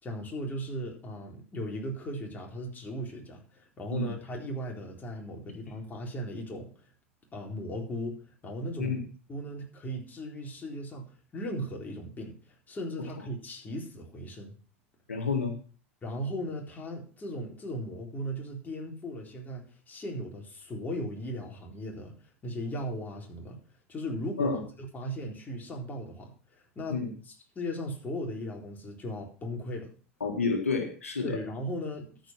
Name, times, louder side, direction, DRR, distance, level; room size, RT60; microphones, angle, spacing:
voice 1, 0.0-6.7 7.3-9.0 9.3-11.1 11.3-12.4 12.7-14.5 16.0-22.1 22.4-23.6 23.9-29.9 31.2-32.3, equal, 25° left, 0 dB, 4.0 m, -37 dB
voice 2, 15.1-15.5 24.4-24.6 26.9-27.1 30.2-31.4, left 4 dB, 90° left, 4 dB, 1.7 m, -29 dB
13.5 x 5.4 x 5.9 m, 0.40 s
hypercardioid pair, 90°, 7 cm